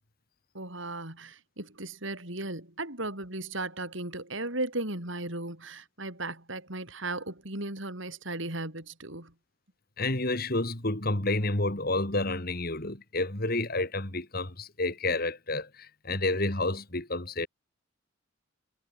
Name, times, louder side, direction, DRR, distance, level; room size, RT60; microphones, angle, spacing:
voice 1, 0.5-9.3, right 2 dB, 60° right, 6.2 m, -36 dB
voice 2, 10.0-17.5, left 2 dB, 45° left, 2.8 m, -30 dB
head